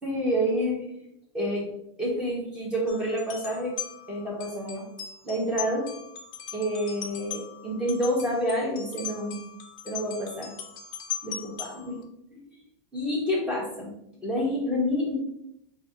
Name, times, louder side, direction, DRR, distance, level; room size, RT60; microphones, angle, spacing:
voice 1, 0.0-0.9 1.3-1.7 2.0-3.7 4.1-4.8 5.2-5.9 6.5-9.4 9.8-10.5 11.2-12.0 12.3-12.4 12.9-13.9 14.2-15.1, equal, 5° right, -5 dB, 1.0 m, -28 dB
sound 1, 2.9-12.0, left 9 dB, 30° left, 0.5 m, -40 dB
5.0 x 2.5 x 2.8 m, 0.78 s
supercardioid pair, 170°, 16 cm